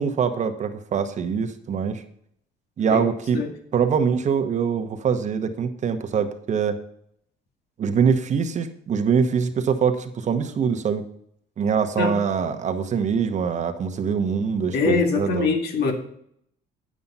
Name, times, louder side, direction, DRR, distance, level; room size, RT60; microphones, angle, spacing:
voice 1, 0.0-2.0 2.8-3.4 3.7-6.8 7.8-11.0 11.6-15.5, right 6 dB, 45° right, 7 dB, 1.2 m, -23 dB
voice 2, 14.7-15.9, left 4 dB, 75° left, 3 dB, 2.1 m, -23 dB
9.4 x 7.4 x 5.6 m, 0.68 s
cardioid pair, 110°, 17 cm